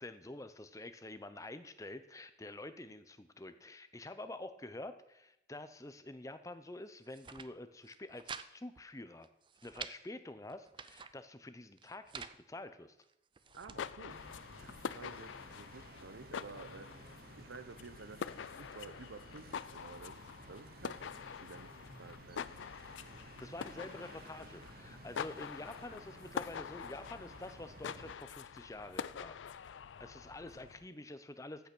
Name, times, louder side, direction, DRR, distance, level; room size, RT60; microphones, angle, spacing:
voice 1, 0.0-9.3 9.6-13.0 23.2-31.7, left 2 dB, 15° left, 11 dB, 0.6 m, -48 dB
sound 1, 7.0-7.5 7.8-8.5 8.8-8.9 9.2-10.0 10.5-11.1 11.8-12.4 13.0-13.8, right 6 dB, 25° right, 0.4 m, -48 dB
sound 2, 13.5-30.9, left 7 dB, 85° left, 0.4 m, -46 dB
voice 2, 13.6-14.2 14.6-16.9 17.4-22.5, right 4 dB, 85° right, 12 dB, 0.8 m, -52 dB
sound 3, 14.1-28.2, right 2 dB, 50° right, 0.9 m, -56 dB
15.0 x 5.7 x 6.1 m, 0.84 s
head